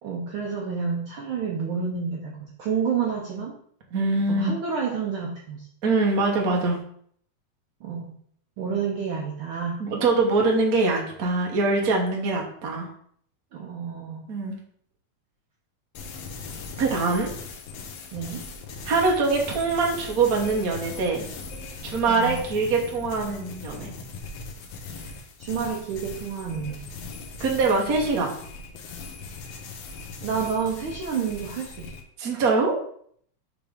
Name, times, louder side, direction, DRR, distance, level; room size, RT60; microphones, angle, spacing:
voice 1, 0.0-3.6 4.3-5.7 7.8-8.1 8.6-9.8 13.5-14.3 18.1-18.4 22.1-22.4 25.0-25.1 25.4-26.8 30.2-31.9, right 6 dB, 90° right, -2 dB, 1.1 m, -29 dB
voice 2, 3.9-4.5 5.8-6.8 9.8-12.9 14.3-14.6 16.8-17.3 18.8-21.3 21.8-23.9 27.4-28.3 32.2-32.8, right 3 dB, 70° right, 0 dB, 0.8 m, -23 dB
sound 1, 15.9-32.0, left 3 dB, 70° left, 1.7 m, -39 dB
5.9 x 3.5 x 5.1 m, 0.63 s
omnidirectional pair, 3.4 m